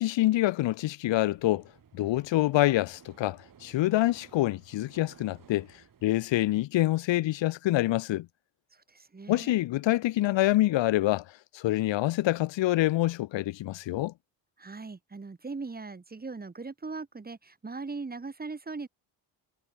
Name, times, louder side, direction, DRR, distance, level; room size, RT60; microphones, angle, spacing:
voice 1, 0.0-1.6 1.9-5.7 6.0-8.3 9.3-11.2 11.5-14.1, left 16 dB, 70° left, 1.4 m, -26 dB
sound 1, 1.1-6.6, right 7 dB, 45° right, 6.9 m, -57 dB
voice 2, 8.7-9.6 14.6-18.9, right 4 dB, 20° right, 2.1 m, -39 dB
cardioid pair, 90°, 46 cm